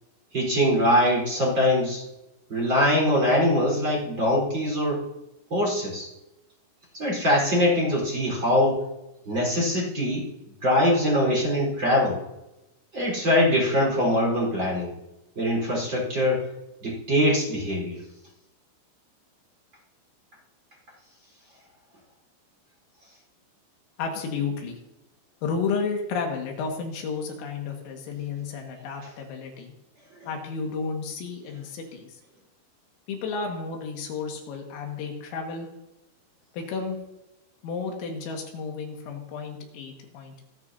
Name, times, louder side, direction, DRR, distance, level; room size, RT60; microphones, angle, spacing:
voice 1, 0.3-2.0 2.5-5.0 5.5-6.1 6.9-8.8 9.3-10.2 10.6-12.2 12.9-14.9 15.4-16.5 16.8-18.0 30.2-30.3, left 1 dB, 25° right, -4 dB, 4.5 m, -23 dB
voice 2, 24.0-24.8 25.4-29.7 30.3-32.2 33.1-35.7 36.5-37.0 37.6-40.5, left 5 dB, 80° left, 1 dB, 4.5 m, -32 dB
26.5 x 10.5 x 2.8 m, 0.95 s
omnidirectional pair, 5.9 m